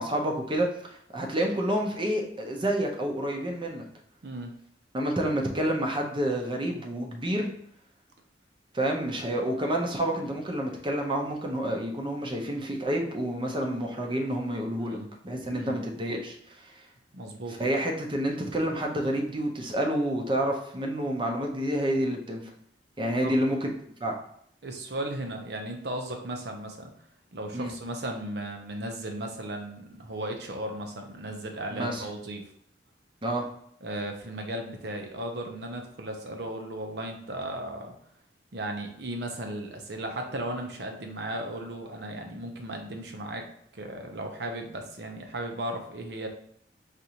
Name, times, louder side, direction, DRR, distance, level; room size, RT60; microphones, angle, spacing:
voice 1, 0.0-3.8 4.9-7.5 8.7-15.0 15.2-16.8 17.6-22.5 23.0-23.6 24.0-24.2 27.5-27.7 31.7-32.1 33.2-33.5, right 1 dB, 30° right, 1 dB, 0.7 m, -29 dB
voice 2, 14.8-15.1 15.5-15.8 17.1-17.6 23.2-23.4 24.6-26.9 27.3-32.4 33.8-37.9 38.5-43.5 43.7-46.3, right 1 dB, 65° right, 3 dB, 0.7 m, -36 dB
4.9 x 2.6 x 2.9 m, 0.67 s
head